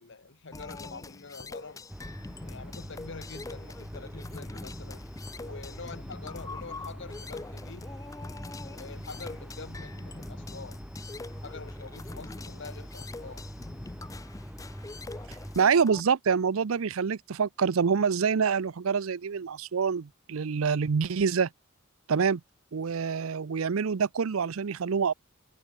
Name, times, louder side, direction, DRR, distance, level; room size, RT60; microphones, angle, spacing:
voice 1, 0.0-1.9 2.4-5.1 5.3-7.9 8.6-10.8 11.4-13.5, left 4 dB, 60° left, 1.0 m, -45 dB
sound 1, 0.5-16.0, left 3 dB, 15° left, 0.4 m, -44 dB
sound 2, 1.9-15.6, equal, 5° right, 2.1 m, -43 dB
voice 2, 15.3-21.5 22.1-22.4 22.7-25.1, right 6 dB, 80° right, 0.5 m, -26 dB
head